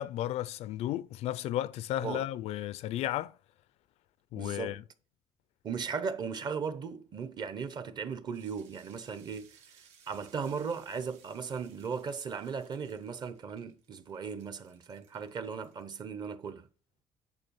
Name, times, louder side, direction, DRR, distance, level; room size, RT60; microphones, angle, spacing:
voice 1, 0.0-3.3 4.3-4.8, left 13 dB, 70° left, 0.4 m, -34 dB
voice 2, 4.4-4.8 5.6-9.6 10.1-16.7, right 6 dB, 40° right, 0.9 m, -37 dB
sound 1, 8.3-15.8, right 7 dB, 90° right, 1.5 m, -63 dB
9.7 x 4.6 x 5.5 m
cardioid pair, 150°, 11 cm